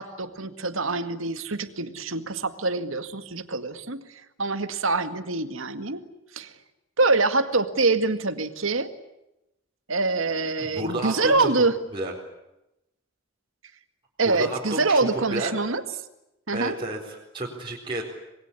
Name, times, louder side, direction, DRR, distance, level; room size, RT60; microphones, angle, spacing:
voice 1, 0.0-4.0 4.4-6.0 6.3-6.5 7.0-8.9 9.9-11.7 14.2-15.8 16.5-16.8, right 3 dB, 75° right, 9 dB, 2.0 m, -25 dB
voice 2, 10.6-11.5 11.9-12.1 14.2-14.6 14.9-15.5 16.5-18.0, right 2 dB, 25° right, -3 dB, 4.3 m, -31 dB
26.5 x 21.5 x 9.9 m, 0.90 s
head